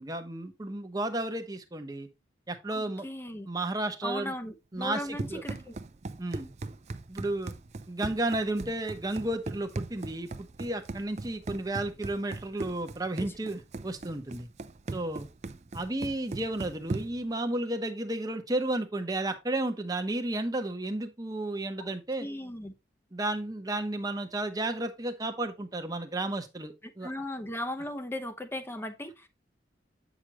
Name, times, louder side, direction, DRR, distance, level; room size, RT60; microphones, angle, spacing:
voice 1, 0.0-2.1 2.5-3.1 3.5-4.3 4.7-5.0 5.3-5.4 6.2-6.5 7.1-7.5 7.9-14.5 14.9-15.3 15.7-22.3 23.1-27.1, right 2 dB, 20° right, 0.9 m, -32 dB
voice 2, 2.7-3.5 4.0-5.8 13.2-13.3 21.8-21.9 22.2-22.7 26.8-29.3, left 1 dB, 15° left, 0.8 m, -37 dB
Run, 4.8-17.3, right 2 dB, 40° right, 0.5 m, -39 dB
8.8 x 6.2 x 3.0 m
head